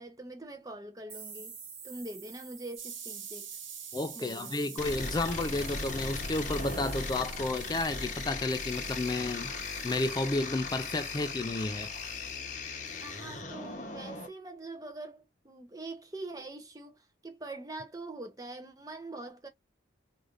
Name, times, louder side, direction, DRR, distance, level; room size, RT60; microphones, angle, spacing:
voice 1, 0.0-1.6 1.8-3.5 4.1-4.8 13.0-19.5, right 2 dB, 20° right, 0.6 m, -44 dB
sound 1, 1.1-5.8, right 6 dB, 60° right, 1.2 m, -50 dB
sound 2, 2.8-13.4, right 7 dB, 85° right, 1.0 m, -47 dB
voice 2, 3.9-9.5 9.8-11.9, left 2 dB, 20° left, 0.3 m, -32 dB
sound 3, 4.8-14.3, left 4 dB, 40° left, 0.8 m, -38 dB
3.3 x 2.6 x 2.4 m
head